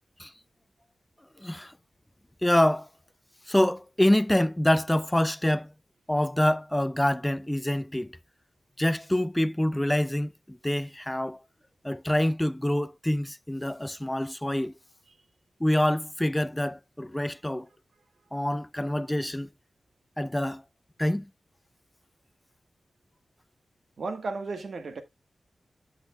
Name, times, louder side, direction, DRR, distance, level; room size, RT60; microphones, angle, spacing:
voice 1, 1.4-1.7 2.4-2.9 3.5-5.7 6.1-8.1 8.8-11.4 11.8-14.7 15.6-17.7 18.3-19.5 20.2-20.6 21.0-21.3, left 1 dB, 10° left, 0.4 m, -26 dB
voice 2, 24.0-25.0, right 3 dB, 70° right, 1.6 m, -34 dB
13.0 x 5.8 x 2.2 m
cardioid pair, 55°, 0 cm